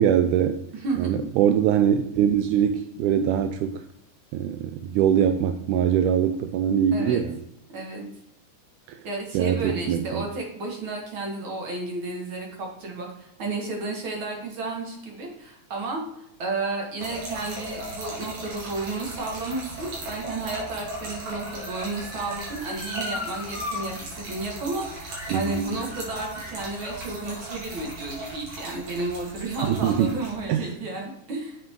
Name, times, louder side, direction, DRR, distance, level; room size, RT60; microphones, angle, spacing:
voice 1, 0.0-0.6 1.0-3.8 4.3-7.4 8.9-9.0 9.3-10.2 25.3-25.7 29.6-30.1 30.5-30.7, right 9 dB, 80° right, 8 dB, 2.0 m, -23 dB
voice 2, 0.7-1.1 6.9-7.2 7.7-8.1 9.0-16.0 16.4-31.6, right 3 dB, 45° right, 0 dB, 2.3 m, -32 dB
Trickle dribble / Fill (with liquid), 17.0-30.4, right 1 dB, 65° right, 3.9 m, -38 dB
Motor vehicle (road) / Siren, 19.6-23.8 24.2-24.3 25.1-25.4 25.8-27.4 28.2-28.3, left 1 dB, 15° right, 2.6 m, -39 dB
7.8 x 7.4 x 3.7 m, 0.75 s
omnidirectional pair, 3.7 m